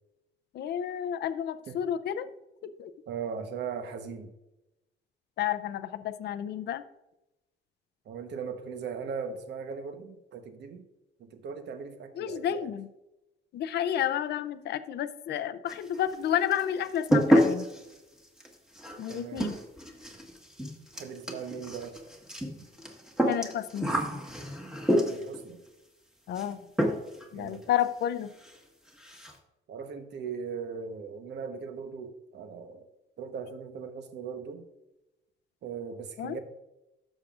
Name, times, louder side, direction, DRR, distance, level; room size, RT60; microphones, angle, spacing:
voice 1, 0.5-2.3 2.8-2.9 5.4-6.8 12.2-12.9 13.5-17.7 19.0-19.6 23.3-24.2 26.3-26.6 27.3-28.3 36.2-36.4, left 10 dB, 60° left, 11 dB, 0.5 m, -31 dB
voice 2, 3.1-4.3 8.0-10.9 11.2-12.7 19.1-19.5 20.9-22.0 25.0-25.6 27.3-27.6 29.7-32.8 33.2-34.7 35.6-36.4, right 6 dB, 60° right, 8 dB, 1.1 m, -39 dB
sound 1, 15.7-16.2 16.5-25.4 26.3-26.5 26.8-27.3 27.5-27.6 28.0-28.1 28.4-28.6 28.9-29.4, equal, 5° right, 1.5 m, -29 dB
12.5 x 7.4 x 2.5 m, 0.94 s
cardioid pair, 135°, 20 cm